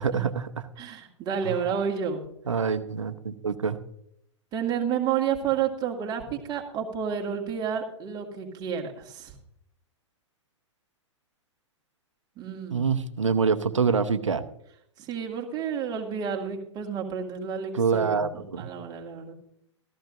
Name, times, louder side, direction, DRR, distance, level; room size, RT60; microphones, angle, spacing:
voice 1, 0.0-0.7 1.4-1.6 2.5-3.8 12.7-14.4 17.7-18.7, right 5 dB, 75° right, 9 dB, 1.0 m, -26 dB
voice 2, 0.8-2.2 4.5-9.3 12.4-12.9 15.0-19.3, right 7 dB, 25° right, 1 dB, 2.2 m, -30 dB
14.5 x 14.5 x 2.6 m, 0.73 s
figure-of-eight pair, 110°, 16 cm